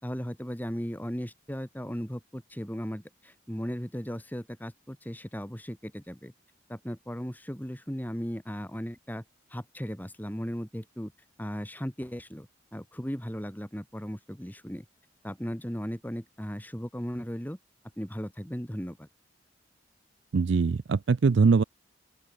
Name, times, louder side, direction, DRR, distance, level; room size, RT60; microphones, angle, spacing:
voice 1, 0.0-6.3 6.7-9.2 9.5-11.1 11.4-14.9 15.2-17.6 18.0-19.1, equal, 10° left, 2.4 m, -36 dB
voice 2, 20.3-21.6, right 4 dB, 65° right, 0.4 m, -22 dB
open air
head